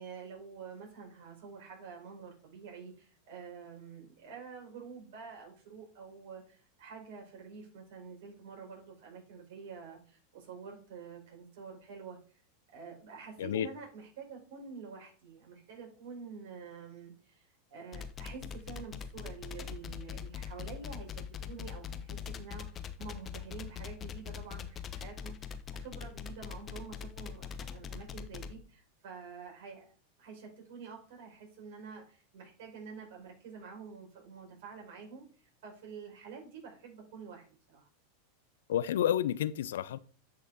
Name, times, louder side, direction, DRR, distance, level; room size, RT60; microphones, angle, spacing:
voice 1, 0.0-12.2 12.7-29.9 30.2-35.2 35.6-37.9, right 5 dB, 65° right, 1 dB, 4.8 m, -48 dB
sound 1, 17.9-28.5, left 7 dB, 30° left, 1.0 m, -42 dB
voice 2, 38.7-40.0, left 11 dB, 75° left, 18 dB, 0.5 m, -30 dB
10.5 x 6.0 x 4.0 m, 0.40 s
hypercardioid pair, 100°, 0 cm